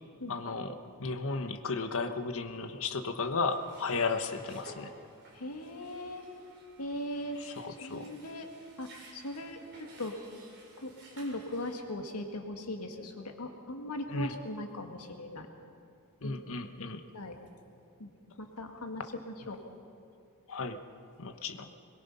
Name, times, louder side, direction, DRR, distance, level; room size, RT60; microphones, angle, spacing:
voice 1, 0.3-4.9 7.4-8.1 14.1-14.3 16.2-17.0 20.5-20.8 21.2-21.7, left 4 dB, 65° left, 8 dB, 1.2 m, -34 dB
sound 1, 3.1-11.8, right 1 dB, 55° right, 4.7 m, -54 dB
voice 2, 5.3-6.3 6.8-7.4 7.8-8.5 8.8-10.1 10.8-15.5 16.2-16.4 17.1-17.4 18.0-19.6, left 1 dB, 90° left, 4 dB, 2.0 m, -39 dB
22.0 x 21.5 x 5.6 m, 2.5 s
head